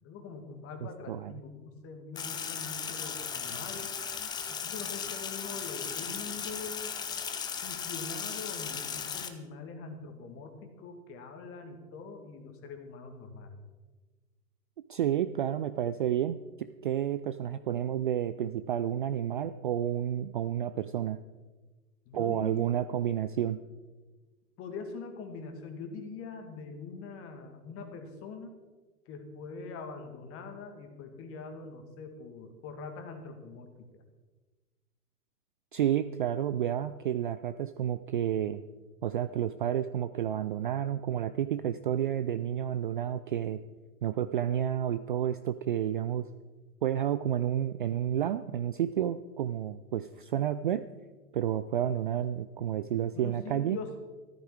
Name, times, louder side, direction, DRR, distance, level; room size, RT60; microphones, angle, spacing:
voice 1, 0.0-3.9 4.5-6.9 7.6-13.6 22.1-22.6 24.6-28.5 29.1-34.0 53.1-54.0, left 4 dB, 30° left, 6 dB, 2.2 m, -43 dB
voice 2, 0.8-1.3 14.9-21.2 22.1-23.6 35.7-38.6 39.0-43.6 44.0-46.3 46.8-50.9 51.3-53.8, right 10 dB, 35° right, 12 dB, 0.4 m, -30 dB
Sink (filling or washing), 2.2-9.3, left 7 dB, 10° left, 0.6 m, -36 dB
14.5 x 13.5 x 4.7 m, 1.3 s
figure-of-eight pair, 100°, 47 cm